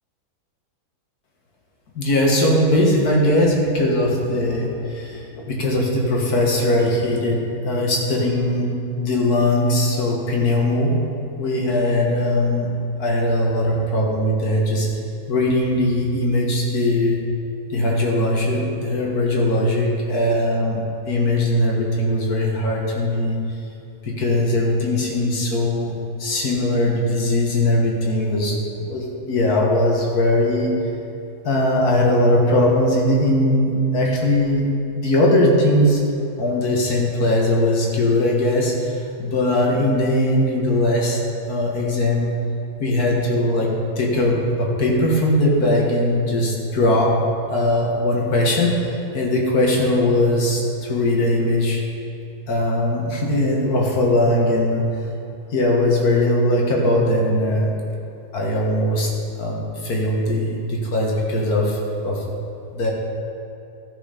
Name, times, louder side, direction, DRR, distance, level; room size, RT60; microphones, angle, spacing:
voice 1, 2.0-8.7 9.0-10.9 11.4-12.7 13.0-14.9 15.3-17.2 17.7-20.8 21.1-23.4 24.0-25.9 26.2-30.7 31.4-34.6 35.0-36.0 36.4-41.2 41.5-42.3 42.8-47.1 47.5-48.7 49.1-51.8 52.5-54.9 55.5-57.7 58.3-59.1 59.4-61.8 62.0-62.2 62.7-62.9, left 1 dB, 75° left, -1 dB, 2.1 m, -20 dB
13.0 x 6.4 x 5.1 m, 2.8 s
omnidirectional pair, 1.6 m